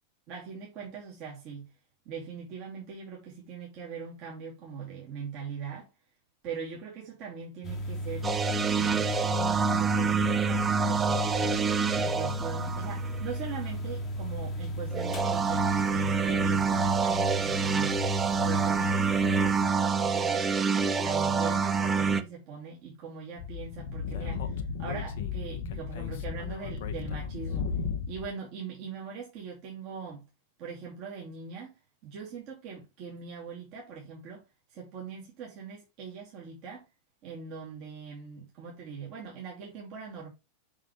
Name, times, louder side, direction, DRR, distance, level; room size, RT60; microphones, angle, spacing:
voice 1, 0.3-1.7 2.0-5.9 6.4-8.3 8.7-11.6 11.9-18.1 18.4-20.5 21.0-27.7 28.1-30.2 30.6-31.8 32.0-34.4 34.7-36.8 37.2-40.3, right 5 dB, 40° right, 2.7 m, -41 dB
sound 1, 7.6-19.7, equal, 25° left, 1.2 m, -35 dB
sound 2, 8.2-13.4 14.9-22.2, right 5 dB, 20° right, 0.7 m, -27 dB
Speech / Wind, 23.4-28.3, left 6 dB, 55° left, 0.9 m, -34 dB
6.2 x 5.6 x 3.2 m
figure-of-eight pair, 90°, 0 cm